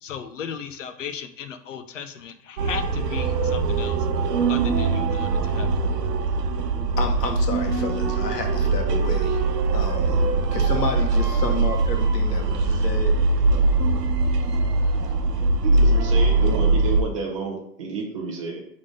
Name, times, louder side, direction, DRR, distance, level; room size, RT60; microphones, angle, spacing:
voice 1, 0.0-5.7, left 7 dB, 50° left, 9 dB, 0.6 m, -36 dB
sound 1, 2.6-17.0, right 3 dB, 70° right, 1.0 m, -22 dB
voice 2, 7.0-9.4 9.7-13.1, left 4 dB, 75° left, 3 dB, 1.5 m, -31 dB
voice 3, 15.6-18.7, right 4 dB, 20° right, -1 dB, 0.6 m, -30 dB
5.5 x 3.6 x 5.1 m, 0.69 s
supercardioid pair, 180°, 49 cm